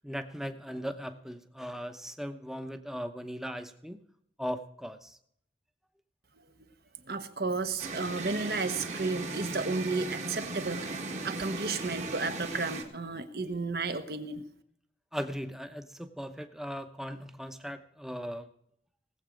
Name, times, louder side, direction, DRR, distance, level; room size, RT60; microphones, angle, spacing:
voice 1, 0.0-4.0 4.4-5.2 15.1-18.4, equal, ahead, 8 dB, 0.8 m, -38 dB
voice 2, 7.1-14.4, right 3 dB, 60° right, 9 dB, 1.2 m, -33 dB
sound 1, 7.8-12.8, right 3 dB, 40° right, 1.8 m, -37 dB
18.5 x 8.0 x 5.1 m, 0.70 s
head